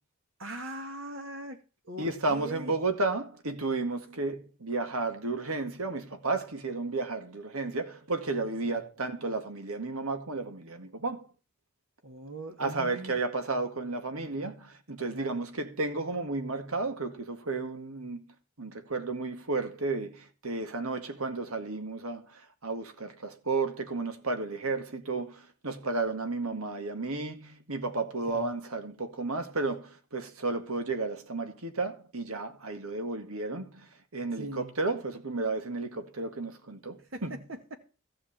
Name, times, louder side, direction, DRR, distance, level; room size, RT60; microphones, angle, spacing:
voice 1, 0.4-1.6 1.8-2.7 8.6-8.8 12.0-13.1 15.1-15.4 28.3-28.5 34.4-34.7 37.1-37.7, right 1 dB, 65° right, 2.1 m, -41 dB
voice 2, 2.0-11.3 12.6-18.2 18.6-37.3, right 3 dB, 80° right, 2.0 m, -33 dB
15.0 x 5.0 x 8.8 m
head